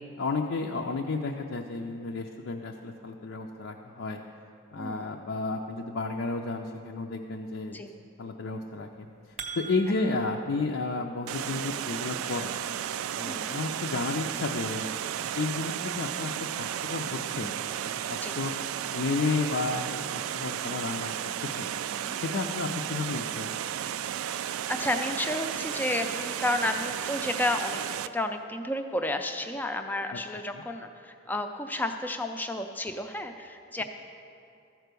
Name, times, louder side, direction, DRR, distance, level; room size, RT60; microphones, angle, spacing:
voice 1, 0.2-4.2 4.7-7.8 8.2-12.5 13.2-14.9 15.3-18.5 18.9-21.1 21.4-21.7 22.2-23.6 30.5-30.6, left 3 dB, 65° left, 1 dB, 0.5 m, -32 dB
voice 2, 4.7-5.1 7.7-7.9 13.3-13.6 18.2-18.4 21.9-22.2 24.5-33.8, left 1 dB, 10° left, 6 dB, 0.4 m, -32 dB
sound 1, 8.9-10.4, right 5 dB, 30° right, 0.7 m, -41 dB
Water, 11.3-28.1, right 10 dB, 85° right, 0.3 m, -33 dB
13.5 x 4.6 x 6.7 m, 2.6 s
head